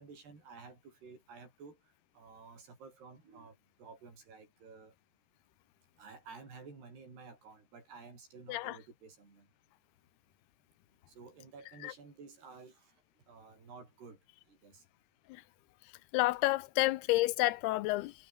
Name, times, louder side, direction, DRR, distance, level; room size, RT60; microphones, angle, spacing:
voice 1, 0.0-1.8 2.1-4.9 6.0-9.5 11.1-12.9 13.3-14.2 14.5-14.8, right 4 dB, 75° right, 9.8 m, -53 dB
voice 2, 16.1-18.1, left 19 dB, 85° left, 2.7 m, -29 dB
omnidirectional pair, 4.7 m